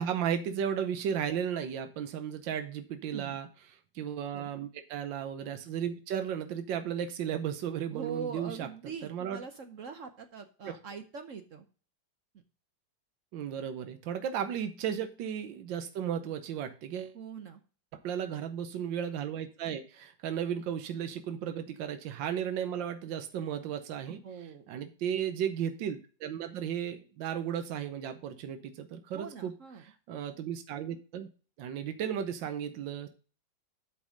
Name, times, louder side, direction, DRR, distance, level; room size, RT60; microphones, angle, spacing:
voice 1, 0.0-3.5 3.9-8.7 9.0-9.4 10.6-10.8 13.3-17.2 17.9-29.5 29.8-31.3 31.6-33.1, right 9 dB, 85° right, 9 dB, 1.5 m, -35 dB
voice 2, 7.9-11.6 17.1-17.6 24.1-24.7 29.1-29.8, right 6 dB, 55° right, 8 dB, 0.9 m, -42 dB
8.3 x 5.3 x 5.0 m, 0.37 s
omnidirectional pair, 2.0 m